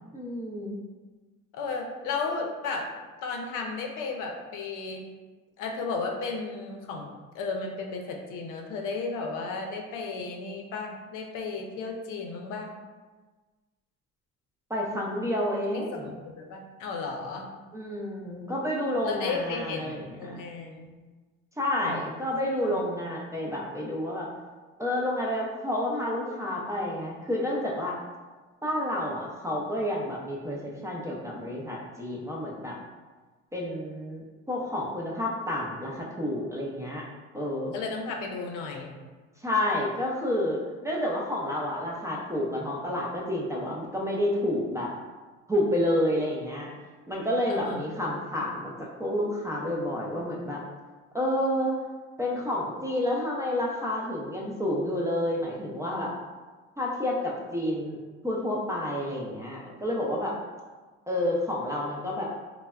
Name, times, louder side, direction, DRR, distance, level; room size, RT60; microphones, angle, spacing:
voice 1, 0.1-0.8 14.7-16.1 17.7-20.4 21.6-24.3 24.8-28.0 28.6-32.8 33.5-37.1 37.3-37.7 39.4-44.9 45.5-46.7 47.1-50.6 51.1-51.7 52.2-56.1 56.8-58.0 58.2-60.4 61.1-62.3, left 1 dB, 10° right, -3 dB, 0.4 m, -29 dB
voice 2, 1.5-2.9 3.2-5.0 5.6-7.1 7.3-12.7 15.7-17.5 19.0-20.9 21.8-22.1 22.7-22.8 37.7-38.9 47.5-48.0, left 4 dB, 70° left, 2 dB, 0.6 m, -34 dB
3.2 x 2.1 x 2.3 m, 1.3 s
supercardioid pair, 95°, 33 cm